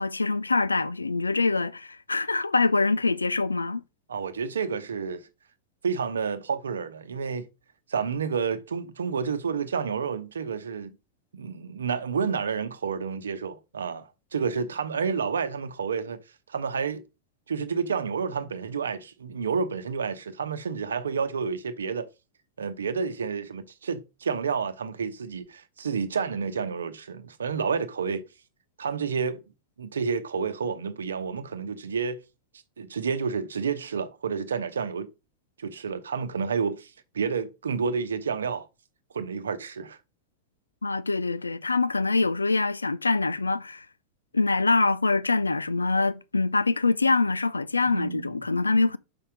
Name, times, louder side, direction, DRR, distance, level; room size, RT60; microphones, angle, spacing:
voice 1, 0.0-3.8 40.8-43.9 44.3-49.0, left 3 dB, 80° left, 0.4 m, -24 dB
voice 2, 4.1-5.3 5.8-7.5 7.9-11.0 11.3-16.2 16.5-17.0 17.5-22.1 22.6-28.2 28.8-29.4 29.8-32.2 32.8-35.1 35.6-38.7 39.1-40.0 47.9-48.3, right 6 dB, 70° right, 0.8 m, -30 dB
5.8 x 5.6 x 4.9 m
figure-of-eight pair, 90°, 0 cm